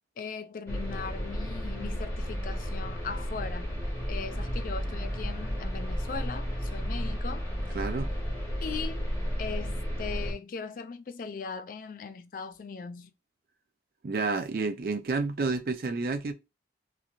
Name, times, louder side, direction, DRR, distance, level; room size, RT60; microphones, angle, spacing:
voice 1, 0.2-3.7 4.1-7.5 8.6-9.1 9.4-13.1, left 5 dB, 45° left, 0.3 m, -39 dB
sound 1, 0.7-10.3, equal, 15° left, 0.8 m, -33 dB
voice 2, 7.7-8.1 14.0-16.3, right 3 dB, 50° right, 0.4 m, -30 dB
3.0 x 2.5 x 2.4 m
head